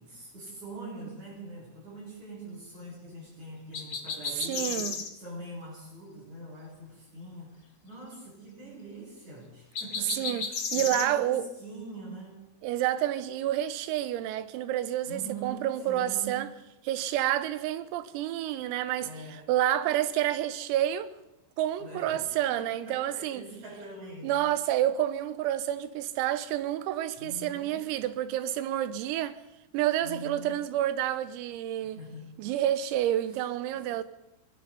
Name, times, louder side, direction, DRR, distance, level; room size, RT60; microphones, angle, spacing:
voice 1, 0.0-12.5 15.1-16.5 19.0-19.5 21.8-24.5 27.2-27.8 30.0-30.6 31.8-32.3 33.3-33.4 33.7-33.9, right 2 dB, 35° right, 9.2 m, -44 dB
sound 1, 3.7-5.1 9.7-11.1, left 5 dB, 55° left, 1.5 m, -33 dB
voice 2, 4.5-5.0 10.1-10.5 10.7-11.5 12.6-16.5 16.8-21.1 21.6-23.4 24.2-29.4 29.7-32.0 32.4-34.0, right 12 dB, 90° right, 3.9 m, -29 dB
25.0 x 20.0 x 7.0 m
omnidirectional pair, 5.9 m